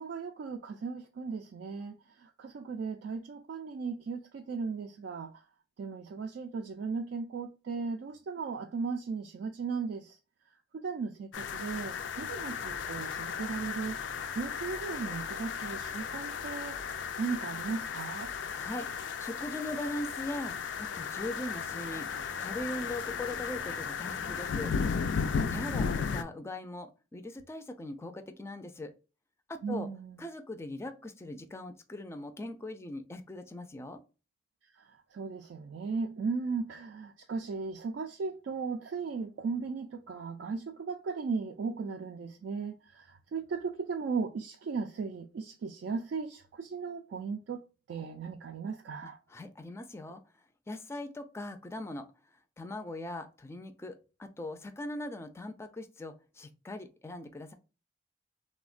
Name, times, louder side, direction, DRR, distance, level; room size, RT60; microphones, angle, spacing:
voice 1, 0.0-5.4 5.8-10.2 10.7-14.0 14.3-16.8 17.2-18.3 25.5-25.7 29.6-30.2 34.7-47.6 47.9-49.2, right 5 dB, 70° right, 0.3 m, -37 dB
sound 1, 11.3-26.2, left 6 dB, 90° left, 0.3 m, -35 dB
sound 2, 11.4-25.1, right 1 dB, 20° right, 0.6 m, -55 dB
voice 2, 18.5-22.1 22.4-24.7 25.5-28.9 29.5-29.9 30.2-34.0 49.0-50.2 50.7-52.1 52.6-57.5, left 1 dB, 15° left, 0.3 m, -40 dB
3.3 x 2.1 x 2.4 m
head